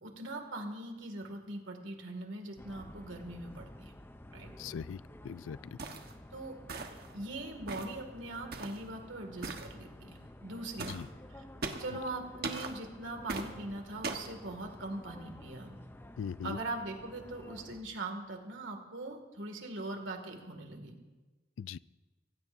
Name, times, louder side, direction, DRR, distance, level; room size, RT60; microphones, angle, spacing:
voice 1, 0.0-3.9 4.3-4.5 6.3-11.0 11.3-11.4 11.8-15.8 16.4-21.0, right 2 dB, 70° right, 4 dB, 2.3 m, -41 dB
sound 1, 2.6-17.8, left 1 dB, 10° left, 0.6 m, -52 dB
voice 2, 4.6-5.6 10.9-11.1 11.9-12.0 16.2-16.6 21.6-21.8, left 7 dB, 80° left, 19 dB, 0.3 m, -40 dB
sound 2, 5.8-6.1 6.7-7.1 7.7-8.0 8.5-8.8 9.4-9.7 10.8-11.0 11.6-11.9 12.4-12.7 13.3-13.5 14.0-14.3, right 3 dB, 55° right, 1.3 m, -39 dB
24.5 x 16.0 x 2.7 m, 1.2 s
head